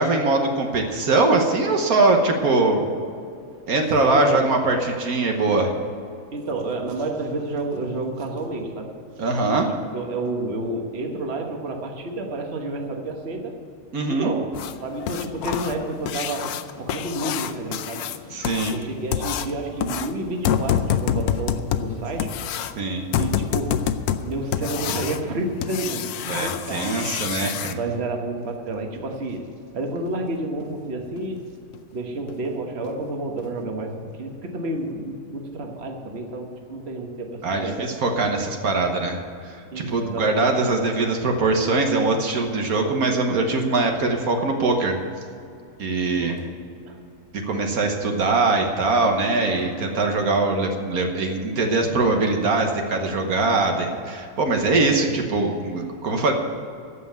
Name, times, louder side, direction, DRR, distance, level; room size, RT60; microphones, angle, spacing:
voice 1, 0.0-2.8 3.7-5.7 9.2-9.7 13.9-14.3 18.3-18.8 22.8-23.0 26.3-27.8 37.4-39.2 39.5-45.0 45.8-46.4 47.5-56.3, right 3 dB, 75° right, 3 dB, 1.6 m, -22 dB
voice 2, 4.1-4.4 6.3-8.9 9.9-13.5 14.1-14.5 14.8-16.5 16.7-18.1 18.7-22.3 23.1-27.1 27.7-29.5 29.7-31.4 31.9-37.9 39.7-40.5 46.1-46.4 46.8-47.0 54.8-55.1, right 2 dB, 45° right, 2 dB, 1.5 m, -30 dB
sound 1, 14.5-27.7 30.1-30.2 30.6-30.7 31.2-31.3 31.7-31.8 32.3-32.5 32.8-32.9 33.4-33.5, left 9 dB, 80° left, 1.1 m, -27 dB
15.0 x 5.6 x 9.2 m, 2.5 s
omnidirectional pair, 1.6 m